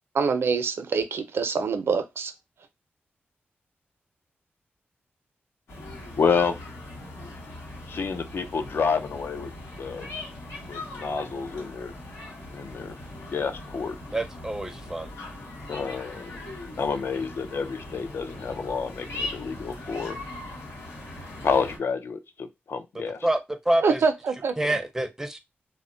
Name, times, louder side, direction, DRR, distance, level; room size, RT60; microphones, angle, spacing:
voice 1, 0.1-2.3 23.8-24.8, right 5 dB, 75° right, 0.4 m, -25 dB
sound 1, 5.7-21.8, left 2 dB, 90° left, 0.9 m, -40 dB
voice 2, 6.2-6.6 7.9-9.5 9.8-10.1 10.7-11.9 12.5-13.0 13.3-14.0 15.7-16.4 16.8-20.2 21.4-23.3, left 5 dB, 65° left, 0.4 m, -29 dB
voice 3, 14.1-15.1 22.9-23.4 23.7-24.0 24.6-25.4, right 1 dB, 10° right, 0.4 m, -27 dB
2.1 x 2.1 x 3.7 m
wide cardioid pair, 95°, 4 cm